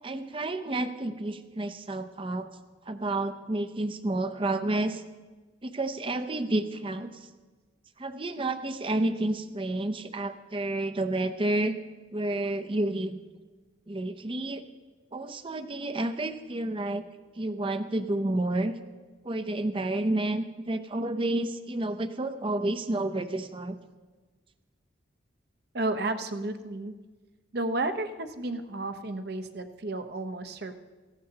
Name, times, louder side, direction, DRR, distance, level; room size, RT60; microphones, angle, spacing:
voice 1, 0.0-2.5 2.9-5.0 5.6-7.1 8.0-11.8 12.1-13.2 13.9-14.6 15.1-17.0 17.4-18.7 19.2-23.8, right 2 dB, 30° right, 9 dB, 0.6 m, -30 dB
voice 2, 25.7-26.9 27.5-30.7, right 2 dB, 55° right, 8 dB, 0.8 m, -32 dB
18.0 x 15.5 x 2.9 m, 1.3 s
head